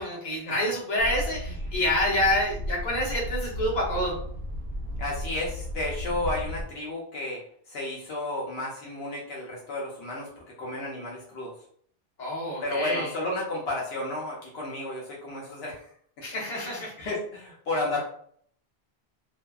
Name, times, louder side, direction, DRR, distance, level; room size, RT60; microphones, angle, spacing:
voice 1, 0.0-4.2 12.2-13.1 16.2-17.1, left 1 dB, 45° left, -4 dB, 1.0 m, -27 dB
sound 1, 1.0-6.6, equal, 65° right, 0.7 m, -34 dB
voice 2, 5.0-11.5 12.6-15.9 16.5-18.0, left 2 dB, 75° left, -3 dB, 0.8 m, -32 dB
2.6 x 2.3 x 2.2 m, 0.62 s
omnidirectional pair, 1.0 m